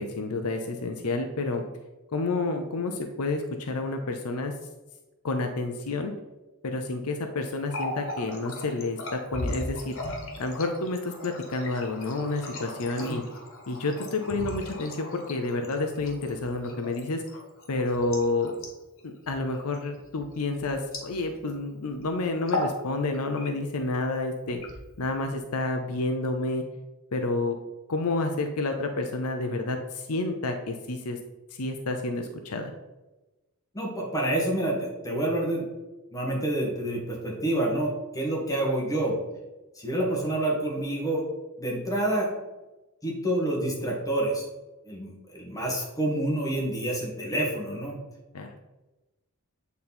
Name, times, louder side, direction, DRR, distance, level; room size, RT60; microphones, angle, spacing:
voice 1, 0.0-1.6 2.1-4.5 5.2-6.1 6.6-9.9 10.4-13.2 13.7-17.2 17.7-18.5 19.0-24.6 25.0-26.6 27.1-27.6 27.9-31.2 31.6-32.7 48.3-48.5, left 2 dB, 80° left, 5 dB, 0.7 m, -29 dB
Water tap faucet, 7.5-21.6 21.8-22.0 22.4-22.8 23.1-23.8 24.4-25.2, left 2 dB, 65° left, 1.7 m, -38 dB
voice 2, 33.7-35.7 36.1-39.2 39.8-41.2 41.6-42.3 43.0-44.5 44.8-48.0, right 1 dB, 15° left, -2 dB, 1.8 m, -28 dB
8.5 x 4.1 x 4.3 m, 1.1 s
head